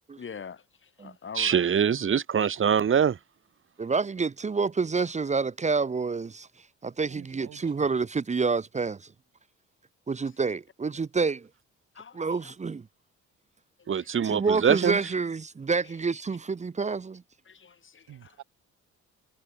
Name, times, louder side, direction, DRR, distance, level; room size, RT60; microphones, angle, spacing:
voice 1, 0.2-1.5 11.9-12.5 13.9-14.1 15.8-15.9 17.5-18.3, left 6 dB, 40° left, 3.2 m, -44 dB
voice 2, 1.4-3.2 13.9-15.0, right 7 dB, 40° right, 1.7 m, -23 dB
voice 3, 3.8-6.5 6.8-9.1 10.1-11.5 12.1-12.9 14.2-17.2, right 4 dB, 25° right, 0.7 m, -28 dB
voice 4, 7.1-7.9 18.1-18.4, right 12 dB, 75° right, 3.2 m, -49 dB
cardioid pair, 90°, 30 cm